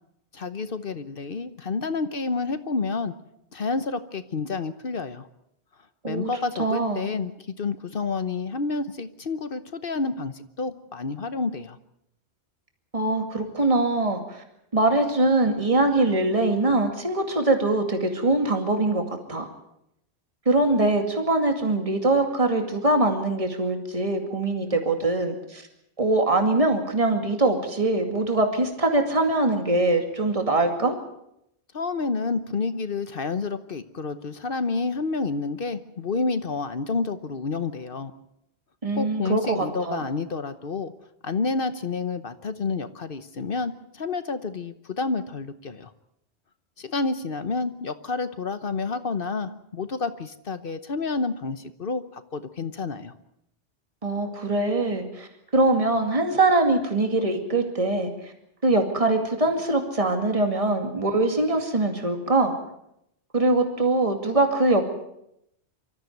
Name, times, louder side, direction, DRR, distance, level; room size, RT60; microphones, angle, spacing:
voice 1, 0.3-3.1 3.5-5.3 6.1-11.8 31.7-38.1 38.9-40.9 41.2-45.9 46.8-53.1, left 4 dB, 55° left, 12 dB, 1.2 m, -29 dB
voice 2, 6.6-7.0 12.9-14.4 14.7-19.5 20.5-25.6 26.0-31.0 38.8-40.0 54.0-58.3 58.6-62.5 63.3-64.8, right 2 dB, 30° right, 5 dB, 2.4 m, -23 dB
24.5 x 14.0 x 9.4 m, 0.80 s
omnidirectional pair, 1.1 m